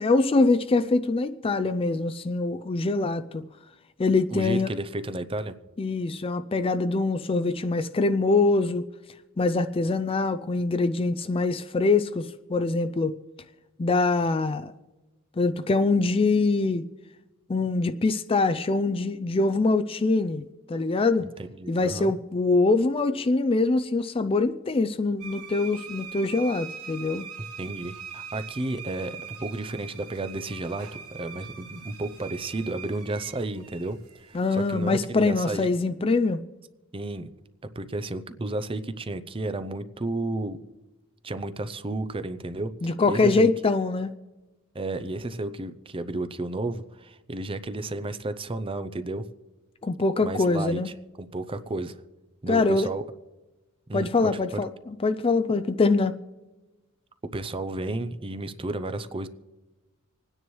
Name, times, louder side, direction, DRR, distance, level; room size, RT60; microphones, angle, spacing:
voice 1, 0.0-3.4 4.0-4.7 5.8-8.8 9.4-13.2 13.8-14.7 15.4-16.8 17.5-21.2 21.7-27.2 34.3-36.4 42.8-44.1 49.8-50.9 52.5-52.9 53.9-56.1, left 3 dB, 25° left, 11 dB, 0.4 m, -24 dB
voice 2, 4.3-5.5 21.6-22.1 27.6-34.0 34.3-35.7 36.9-37.3 37.8-40.6 41.2-43.5 44.7-49.2 50.2-52.0 52.4-53.0 53.9-54.1 54.5-54.6 57.3-59.3, right 2 dB, 25° right, 11 dB, 0.5 m, -32 dB
sound 1, 25.2-34.8, right 7 dB, 85° right, 1.6 m, -42 dB
26.5 x 9.8 x 3.1 m, 1.1 s
head